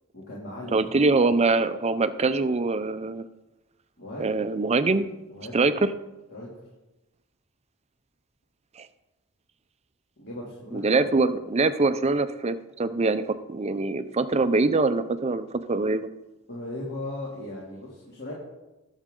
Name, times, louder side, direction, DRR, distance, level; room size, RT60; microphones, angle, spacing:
voice 1, 0.1-0.9 4.0-4.3 5.3-5.6 6.3-6.5 10.2-11.3 16.5-18.3, left 1 dB, 45° left, -5 dB, 2.6 m, -38 dB
voice 2, 0.7-3.2 4.2-5.1 5.5-5.9 8.8-8.9 10.7-16.1, right 3 dB, 30° right, 11 dB, 0.5 m, -24 dB
20.5 x 7.2 x 3.8 m, 1.0 s
head